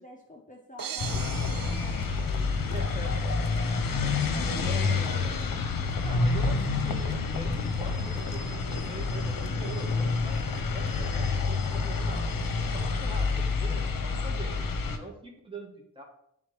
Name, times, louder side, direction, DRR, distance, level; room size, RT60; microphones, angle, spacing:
voice 1, 0.0-2.6 4.3-4.7, left 2 dB, 25° left, 1 dB, 0.7 m, -47 dB
sound 1, 0.8-3.0, right 9 dB, 80° right, 0.5 m, -41 dB
sound 2, 1.0-15.0, left 4 dB, 85° left, 0.7 m, -28 dB
sound 3, 1.8-11.1, left 3 dB, 55° left, 0.8 m, -46 dB
voice 2, 2.6-3.4 4.4-5.6 6.0-12.3 12.7-14.6 14.9-16.0, right 1 dB, 15° right, 0 dB, 1.6 m, -43 dB
10.0 x 3.5 x 3.3 m, 0.75 s
wide cardioid pair, 75°, 33 cm